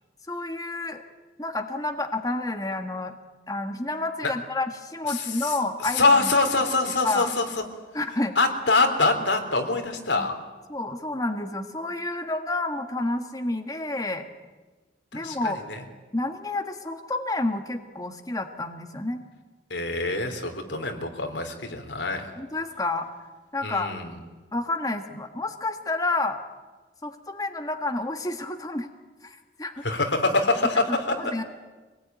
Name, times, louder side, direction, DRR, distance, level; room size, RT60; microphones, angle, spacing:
voice 1, 0.3-1.0 1.4-3.1 3.5-6.3 7.0-7.3 7.9-8.4 10.1-10.3 10.7-14.2 15.1-15.6 16.1-19.2 22.4-23.1 23.5-23.9 24.5-26.4 27.0-28.9 29.2-29.8 30.9-31.4, left 2 dB, 20° left, 5 dB, 1.5 m, -29 dB
voice 2, 5.1-5.5 5.9-7.5 8.4-10.3 15.1-15.8 19.7-22.3 23.6-24.1 29.8-30.8, left 3 dB, 90° left, 5 dB, 3.5 m, -24 dB
25.5 x 19.5 x 9.3 m, 1.3 s
head